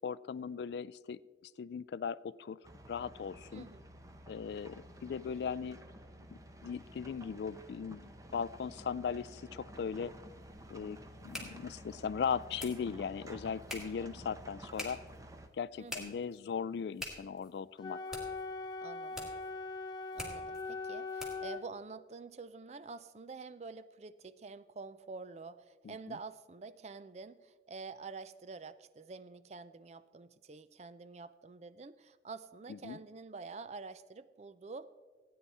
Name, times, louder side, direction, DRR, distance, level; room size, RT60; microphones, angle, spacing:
voice 1, 0.0-1.2 1.6-2.6 2.9-3.7 4.3-5.8 6.3-8.0 8.3-10.1 10.7-11.0 11.2-15.0 15.6-18.0 25.8-26.0 32.7-33.0, left 6 dB, 65° left, 19 dB, 0.3 m, -38 dB
sound 1, 2.6-15.5, right 1 dB, 20° right, 0.8 m, -52 dB
voice 2, 3.5-3.9 15.8-16.1 18.8-19.3 20.1-34.9, right 4 dB, 40° right, 14 dB, 0.4 m, -48 dB
sound 2, 10.0-21.6, left 1 dB, 5° right, 1.9 m, -49 dB
Wind instrument woodwind instrument, 17.8-21.7, left 3 dB, 25° left, 0.6 m, -41 dB
16.0 x 9.5 x 4.2 m, 1.5 s
head